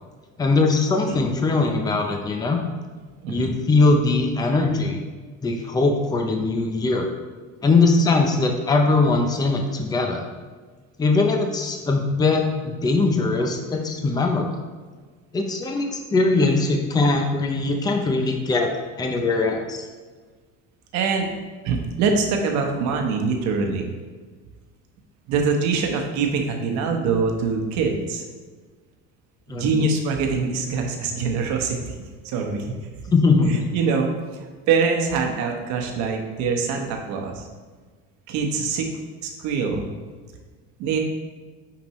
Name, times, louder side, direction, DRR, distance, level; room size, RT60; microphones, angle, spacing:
voice 1, 0.4-2.6 3.3-5.0 5.4-7.1 7.6-10.2 11.0-14.5 15.3-18.7 19.0-19.9 29.5-29.9 33.1-33.7, left 3 dB, 15° left, 3 dB, 0.6 m, -21 dB
voice 2, 20.9-21.3 21.6-23.9 25.3-28.2 29.5-32.7 33.5-34.1 34.7-37.5 38.3-38.9 39.2-39.9 40.8-41.0, right 5 dB, 65° right, 2 dB, 1.2 m, -24 dB
8.7 x 5.2 x 3.1 m, 1.4 s
cardioid pair, 150°, 30 cm